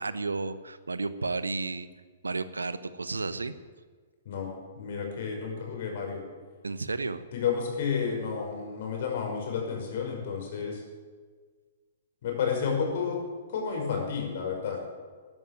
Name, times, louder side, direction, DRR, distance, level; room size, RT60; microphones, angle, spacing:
voice 1, 0.0-1.9 2.2-3.5 6.6-7.2, right 3 dB, 85° right, 14 dB, 0.9 m, -32 dB
voice 2, 4.3-6.2 7.3-10.8 12.2-13.2 13.5-14.8, left 6 dB, 60° left, 1 dB, 5.5 m, -31 dB
14.0 x 11.0 x 9.1 m, 1.5 s
figure-of-eight pair, 115°, 0 cm